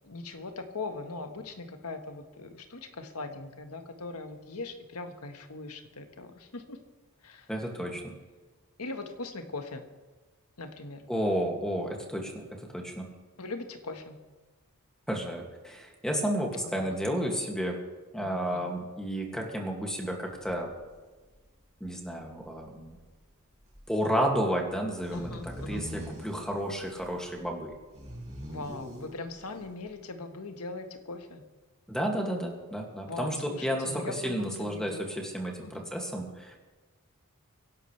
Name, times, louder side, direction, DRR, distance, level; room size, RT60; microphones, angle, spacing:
voice 1, 0.0-6.8 7.2-7.5 7.8-8.0 8.8-9.8 10.6-11.0 13.4-14.2 16.6-17.0 18.2-18.8 25.1-25.9 28.5-31.4 33.0-35.1 35.6-35.8, left 3 dB, 85° left, 6 dB, 1.5 m, -40 dB
voice 2, 7.5-8.1 11.1-13.1 15.1-17.8 18.1-20.7 21.8-23.0 23.9-27.7 31.9-36.5, equal, 5° left, 0 dB, 2.3 m, -32 dB
sound 1, 20.5-20.6 20.8-20.9 21.3-21.4 21.8-21.9 22.4-22.5 22.6-23.0 23.7-23.8 24.3-24.4 24.7-29.9, equal, 30° right, 6.1 m, -43 dB
24.5 x 11.5 x 3.4 m, 1.3 s
head